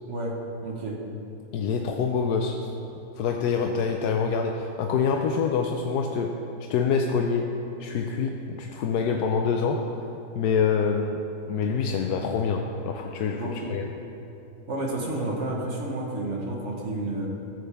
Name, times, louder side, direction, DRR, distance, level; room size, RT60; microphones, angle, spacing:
voice 1, 0.6-1.0 13.4-13.8 14.7-17.3, right 2 dB, 50° right, -1 dB, 1.5 m, -30 dB
voice 2, 1.5-2.6 3.2-6.4 6.7-9.8 10.3-11.2 11.5-13.8, left 5 dB, 85° left, 2 dB, 1.1 m, -26 dB
14.0 x 7.8 x 3.4 m, 2.8 s
omnidirectional pair, 1.6 m